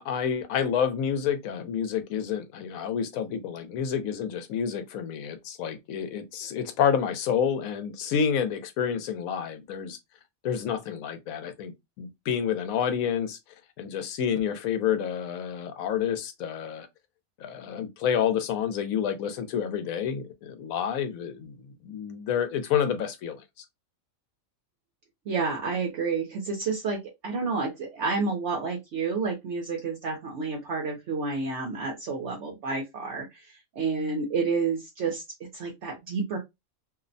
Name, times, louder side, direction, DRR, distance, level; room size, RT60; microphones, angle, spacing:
voice 1, 0.0-10.0 10.4-13.4 13.8-16.9 17.4-23.4, left 8 dB, 85° left, 1.0 m, -29 dB
voice 2, 25.3-35.2 35.5-36.4, right 4 dB, 65° right, 0.9 m, -30 dB
2.7 x 2.0 x 2.5 m
omnidirectional pair, 1.4 m